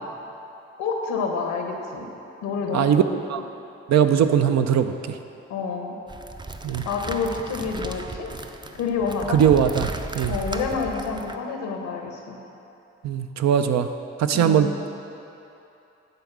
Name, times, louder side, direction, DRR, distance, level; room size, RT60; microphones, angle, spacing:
voice 1, 0.8-2.1 2.4-3.2 5.5-5.9 6.8-8.3 8.8-9.4 10.3-12.4 14.3-14.7, left 5 dB, 85° left, 2 dB, 1.1 m, -28 dB
voice 2, 2.7-3.0 3.3-3.4 3.9-4.9 6.6-6.8 9.3-9.9 10.1-10.4 13.0-13.9 14.2-14.7, right 8 dB, 65° right, 8 dB, 0.6 m, -19 dB
sound 1, 6.1-11.4, right 2 dB, 15° right, 0.5 m, -35 dB
9.6 x 4.0 x 7.2 m, 2.9 s
supercardioid pair, 60°, 30 cm